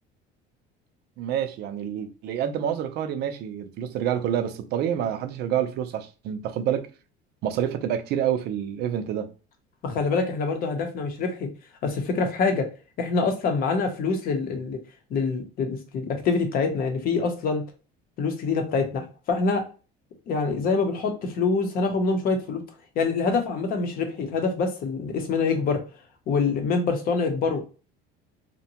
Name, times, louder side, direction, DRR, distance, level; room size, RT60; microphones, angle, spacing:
voice 1, 1.2-6.9 7.4-9.3, right 9 dB, 55° right, 0.5 m, -28 dB
voice 2, 9.8-11.5 11.8-12.7 13.0-14.8 15.1-17.6 18.2-19.6 20.3-22.6 23.0-25.8 26.3-27.6, left 4 dB, 45° left, 0.7 m, -25 dB
2.7 x 2.2 x 2.8 m
cardioid pair, 140°, 21 cm